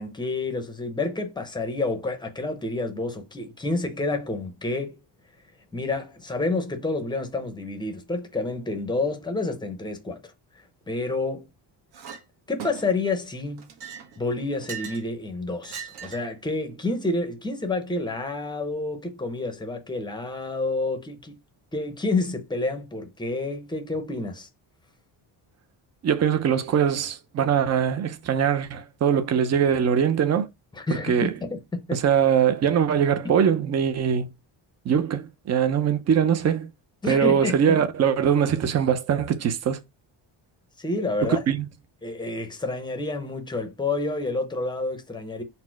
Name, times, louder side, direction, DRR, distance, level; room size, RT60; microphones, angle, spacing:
voice 1, 0.0-5.0 5.7-10.3 10.9-11.5 12.5-13.7 14.2-21.3 21.7-24.5 30.7-31.6 31.9-32.0 33.2-33.4 37.0-37.8 40.8-41.4 42.0-45.4, left 2 dB, 10° left, 0.6 m, -29 dB
Chink clink, 11.9-12.2 12.6-13.1 13.6-15.1 15.6-16.4, right 7 dB, 55° right, 0.9 m, -39 dB
voice 2, 26.0-30.5 31.1-31.3 31.9-34.3 34.9-36.7 37.1-39.8 41.3-41.7, right 8 dB, 35° right, 0.5 m, -22 dB
4.2 x 2.1 x 4.5 m
cardioid pair, 155°, 47 cm